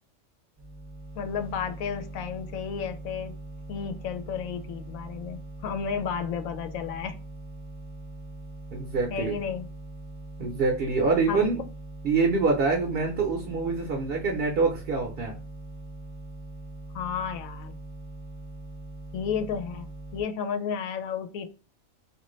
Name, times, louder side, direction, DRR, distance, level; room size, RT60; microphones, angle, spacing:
sound 1, 0.6-20.2, right 2 dB, 15° right, 0.7 m, -42 dB
voice 1, 1.2-3.3 3.7-7.2 9.1-9.7 11.3-11.5 16.9-17.8 19.1-21.5, left 7 dB, 80° left, 9 dB, 1.0 m, -32 dB
voice 2, 8.7-9.4 10.4-11.6 12.0-15.4, right 4 dB, 55° right, 2 dB, 0.8 m, -25 dB
2.9 x 2.5 x 3.0 m, 0.33 s
omnidirectional pair, 1.4 m